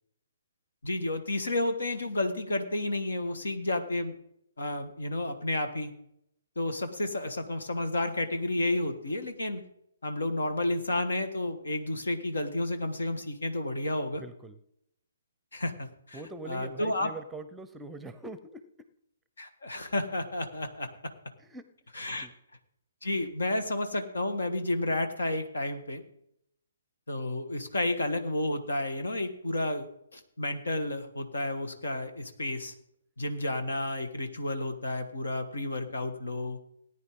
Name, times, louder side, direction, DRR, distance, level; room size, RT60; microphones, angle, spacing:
voice 1, 0.8-4.1 4.6-5.9 6.5-9.6 10.0-14.2 15.5-16.2 16.4-17.1 19.4-20.9 21.9-22.3 23.0-26.0 27.1-32.7 33.2-36.6, left 1 dB, 70° left, 8 dB, 1.7 m, -31 dB
voice 2, 14.1-14.6 16.1-18.6 21.4-21.7 22.2-22.3, right 2 dB, 10° right, 13 dB, 0.8 m, -43 dB
18.5 x 9.6 x 3.8 m, 0.77 s
figure-of-eight pair, 130°, 0 cm